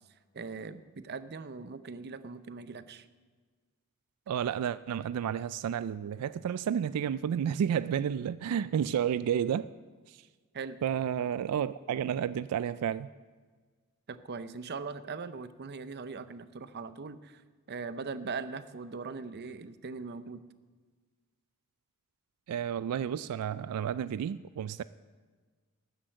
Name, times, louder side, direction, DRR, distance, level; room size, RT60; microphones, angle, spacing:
voice 1, 0.3-3.1 10.5-10.8 14.1-17.4 17.7-20.4, right 4 dB, 50° right, 0.6 m, -40 dB
voice 2, 4.3-9.7 10.1-10.2 10.8-13.1 22.5-24.8, right 8 dB, 85° right, 0.3 m, -31 dB
12.5 x 8.0 x 7.7 m
head